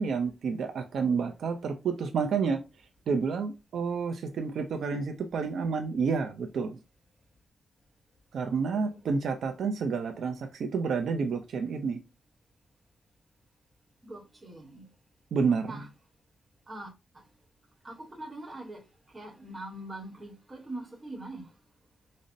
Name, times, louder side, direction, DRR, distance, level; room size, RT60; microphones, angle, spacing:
voice 1, 0.0-2.6 3.1-6.8 8.3-12.0 15.3-15.7, right 5 dB, 75° right, 0.4 m, -29 dB
voice 2, 8.4-9.1 14.0-14.9 15.6-15.9 16.7-17.2 17.8-21.5, right 1 dB, 25° right, 1.0 m, -43 dB
5.2 x 2.0 x 2.5 m
wide cardioid pair, 145°, 0 cm